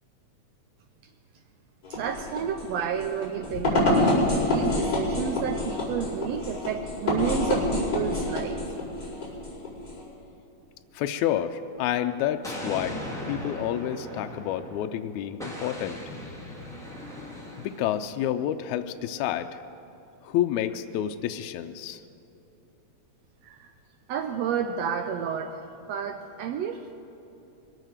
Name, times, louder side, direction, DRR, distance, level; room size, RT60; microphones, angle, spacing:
sound 1, 1.8-10.0, left 1 dB, 30° left, 5.3 m, -27 dB
voice 1, 1.9-8.6 23.4-23.7 24.1-25.6 25.9-27.0, right 8 dB, 75° right, 6 dB, 1.6 m, -31 dB
voice 2, 10.9-13.0 13.3-16.0 17.6-19.6 20.2-22.0, left 11 dB, 80° left, 7 dB, 1.9 m, -29 dB
Explosion, 12.4-14.9 15.4-18.0, left 1 dB, ahead, 1.9 m, -38 dB
22.5 x 9.1 x 6.5 m, 2.9 s
omnidirectional pair, 3.4 m